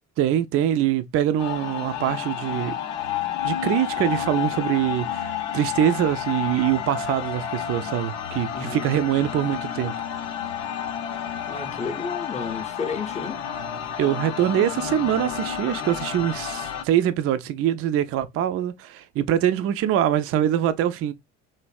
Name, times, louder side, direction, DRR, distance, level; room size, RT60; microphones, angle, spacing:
voice 1, 0.2-2.7 3.4-10.1 14.0-21.1, right 11 dB, 40° right, 0.4 m, -24 dB
sound 1, 1.4-16.8, left 9 dB, 75° left, 0.6 m, -31 dB
voice 2, 8.5-9.0 11.5-13.4, left 5 dB, 20° left, 0.6 m, -32 dB
3.2 x 2.5 x 2.2 m
hypercardioid pair, 60°, 38 cm